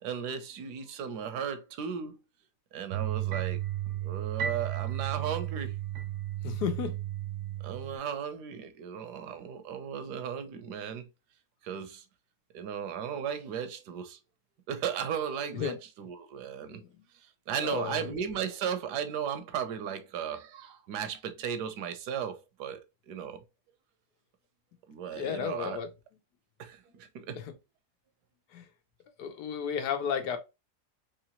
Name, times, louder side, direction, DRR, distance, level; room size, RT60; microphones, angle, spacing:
voice 1, 0.0-2.2 2.7-3.6 4.0-5.7 7.6-11.1 11.6-12.1 12.5-14.2 14.7-16.8 17.1-23.4 24.9-25.8 26.6-27.4, right 8 dB, 80° right, 1.2 m, -36 dB
sound 1, 2.9-8.0, right 12 dB, 65° right, 0.8 m, -34 dB
voice 2, 6.4-7.0 15.5-15.8 16.7-16.9 17.6-18.0 25.1-25.9 28.5-28.6 29.2-30.4, left 7 dB, 80° left, 1.3 m, -33 dB
3.8 x 3.1 x 2.8 m
omnidirectional pair, 1.7 m